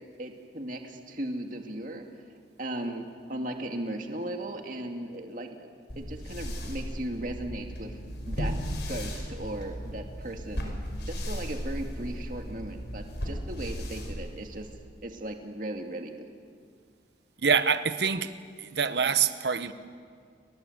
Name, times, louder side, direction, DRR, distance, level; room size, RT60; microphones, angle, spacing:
voice 1, 0.2-2.0 2.6-5.7 6.0-8.5 8.9-10.7 11.1-14.7 15.0-16.3, right 1 dB, 45° right, 2.4 m, -37 dB
sound 1, 5.9-14.8, equal, 70° left, 5.7 m, -36 dB
voice 2, 17.4-18.3 18.6-19.7, right 6 dB, 65° right, 1.2 m, -25 dB
30.0 x 24.0 x 8.1 m
head